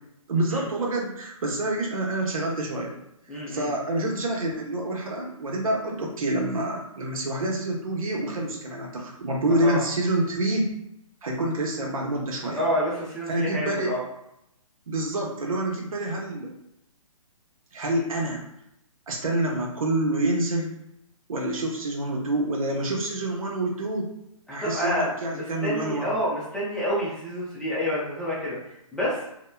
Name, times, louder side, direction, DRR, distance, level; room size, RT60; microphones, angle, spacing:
voice 1, 0.3-2.9 3.3-10.7 11.2-12.6 13.3-14.0 14.9-16.5 17.7-18.4 19.1-20.7 21.3-24.1 24.5-26.1, right 1 dB, 70° right, -1 dB, 0.8 m, -27 dB
voice 2, 3.3-3.7 9.6-9.8 12.5-14.0 24.5-25.1 25.3-28.6 28.9-29.2, equal, 5° left, -9 dB, 0.5 m, -28 dB
2.9 x 2.1 x 2.2 m, 0.80 s
hypercardioid pair, 140°, 18 cm